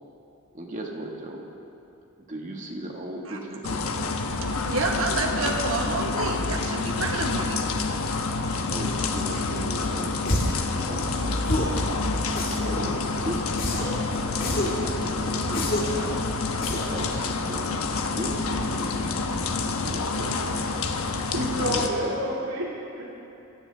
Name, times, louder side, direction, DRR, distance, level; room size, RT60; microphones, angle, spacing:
voice 1, 0.5-1.5 2.3-3.8 8.7-10.2 10.8-11.9 12.4-13.6 14.2-16.1 16.7-17.8 18.1-20.8 21.6-22.2, right 1 dB, 35° right, 0 dB, 1.9 m, -37 dB
sound 1, 3.6-21.9, left 3 dB, 75° left, 1.1 m, -28 dB
voice 2, 4.5-7.6, right 3 dB, 65° right, 2 dB, 1.4 m, -29 dB
sound 2, 10.3-10.6 11.4-11.8 12.4-12.9 13.6-14.0 14.4-14.8 15.5-16.0 16.6-17.0, left 1 dB, 40° left, 2.2 m, -28 dB
voice 3, 21.3-23.1, equal, 85° right, -6 dB, 2.4 m, -29 dB
25.0 x 15.5 x 3.5 m, 2.9 s
head